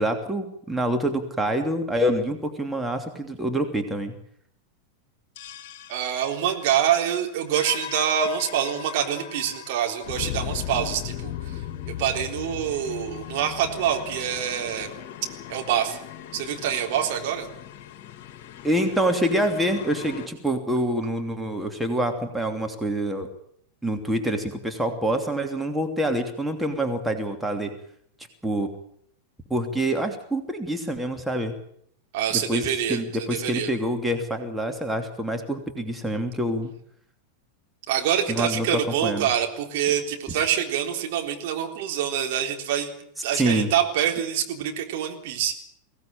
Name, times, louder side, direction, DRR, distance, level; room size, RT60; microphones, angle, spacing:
voice 1, 0.0-4.1 18.6-23.3 23.8-27.7 28.4-28.7 29.5-31.5 32.3-36.7 38.3-39.3 43.3-43.7, right 1 dB, 5° right, 4 dB, 2.9 m, -26 dB
sound 1, 5.4-20.3, left 12 dB, 45° left, 2.6 m, -38 dB
voice 2, 5.9-14.9 15.5-16.0 16.3-17.5 32.1-33.0 33.3-33.7 37.9-42.9 43.2-45.6, right 9 dB, 50° right, 3 dB, 3.8 m, -26 dB
22.5 x 17.0 x 9.0 m, 0.68 s
figure-of-eight pair, 90°, 0 cm